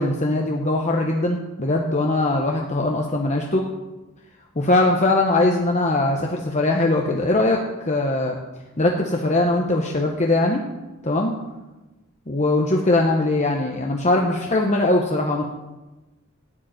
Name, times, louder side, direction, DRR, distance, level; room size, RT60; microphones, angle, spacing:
voice 1, 0.0-3.7 4.7-8.4 8.8-10.6 11.0-11.3 12.3-15.5, left 2 dB, 35° left, 0 dB, 1.0 m, -21 dB
14.0 x 5.2 x 9.0 m, 1.1 s
head